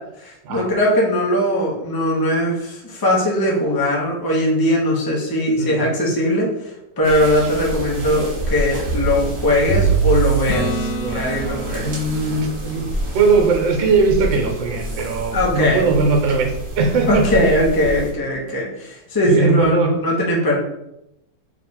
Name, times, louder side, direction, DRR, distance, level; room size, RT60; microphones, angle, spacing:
voice 1, 0.2-6.5 7.0-11.9 15.3-15.8 17.1-20.6, left 1 dB, 25° left, -3 dB, 0.5 m, -20 dB
sound 1, 7.0-18.1, right 4 dB, 45° right, 1.1 m, -26 dB
Acoustic guitar / Strum, 10.5-14.2 19.1-19.2, equal, 75° left, 0.7 m, -30 dB
voice 2, 11.0-12.9 13.1-17.3 19.2-19.9, right 4 dB, 80° right, 2 dB, 1.6 m, -19 dB
3.3 x 3.0 x 4.2 m, 0.85 s
omnidirectional pair, 2.0 m